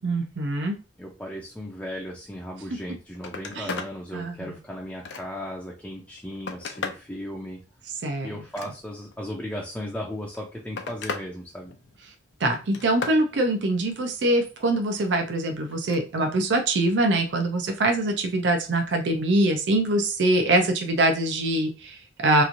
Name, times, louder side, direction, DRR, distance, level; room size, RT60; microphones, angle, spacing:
voice 1, 0.0-0.8 3.6-3.7 4.1-4.5 8.0-8.4 12.4-22.4, right 2 dB, 75° right, 5 dB, 0.5 m, -23 dB
voice 2, 1.0-7.6 8.2-11.7, equal, 10° left, -3 dB, 0.4 m, -36 dB
Telephone, 2.8-2.9 3.1-3.9 4.4-5.5 6.1-7.1 8.3-9.1 10.1-11.3 11.6-12.1 12.5-13.2 15.7-16.0 17.4-17.6, left 4 dB, 75° left, 0.5 m, -36 dB
3.0 x 2.5 x 2.5 m, 0.33 s
head